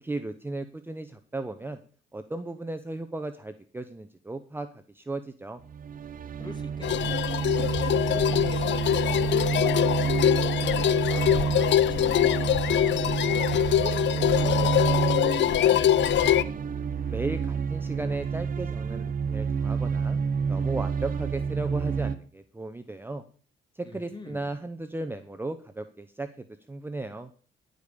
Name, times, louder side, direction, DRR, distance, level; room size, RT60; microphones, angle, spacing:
voice 1, 0.0-1.8 2.1-4.7 4.9-5.6 17.1-20.2 20.5-23.2 23.7-27.3, right 2 dB, 10° right, 9 dB, 0.7 m, -35 dB
sound 1, 5.6-22.1, right 6 dB, 45° right, 0.7 m, -29 dB
voice 2, 6.4-7.3 7.7-13.3 13.8-16.5 23.8-24.5, left 2 dB, 20° left, 6 dB, 2.4 m, -42 dB
sound 2, 6.8-16.4, left 12 dB, 65° left, 0.6 m, -24 dB
14.5 x 5.2 x 6.8 m, 0.43 s
cardioid pair, 90°, 20 cm